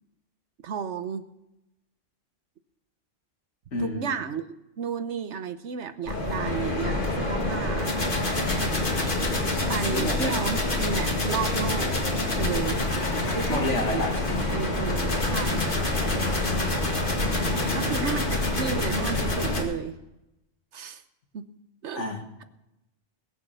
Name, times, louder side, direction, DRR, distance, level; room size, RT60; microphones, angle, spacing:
voice 1, 0.6-1.2 3.8-4.5 4.8-7.9 9.7-11.9 12.4-12.8 13.3-14.0 14.5-15.7 17.7-20.0 20.7-21.0 21.3-21.5 21.8-22.0, right 6 dB, 75° right, 11 dB, 1.2 m, -32 dB
voice 2, 3.7-4.1 9.9-10.4 13.5-14.2 17.5-18.1 21.9-22.4, left 2 dB, 85° left, 3 dB, 2.1 m, -31 dB
sound 1, 6.1-19.6, left 2 dB, 45° left, 2.3 m, -26 dB
20.5 x 7.2 x 6.8 m, 0.90 s
omnidirectional pair, 1.2 m